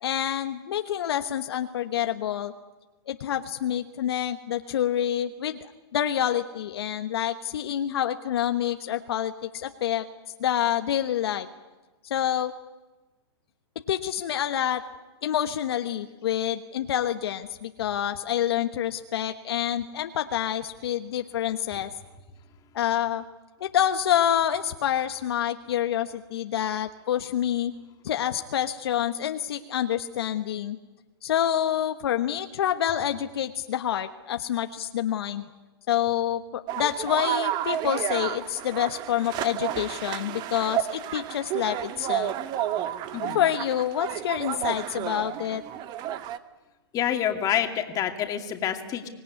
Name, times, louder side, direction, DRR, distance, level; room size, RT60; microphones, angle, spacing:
voice 1, 0.0-2.5 3.1-10.1 10.4-11.5 12.0-12.5 13.9-14.8 15.2-21.9 22.7-23.2 23.6-27.7 28.0-30.8 31.2-35.5 35.9-42.3 43.3-45.6, left 10 dB, 65° left, 7 dB, 1.3 m, -27 dB
sound 1, 36.7-46.4, right 12 dB, 30° right, 1.2 m, -31 dB
voice 2, 46.9-49.1, left 10 dB, 25° left, 5 dB, 2.5 m, -27 dB
25.0 x 18.5 x 9.7 m, 1.2 s
hypercardioid pair, 130°, 14 cm